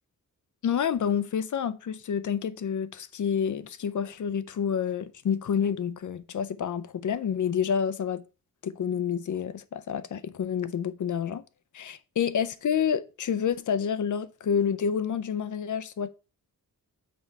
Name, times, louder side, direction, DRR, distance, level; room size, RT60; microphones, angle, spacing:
voice 1, 0.6-8.2 8.6-11.4 11.7-16.1, left 7 dB, 60° left, 0.6 m, -28 dB
6.1 x 4.6 x 5.3 m
wide cardioid pair, 170°, 35 cm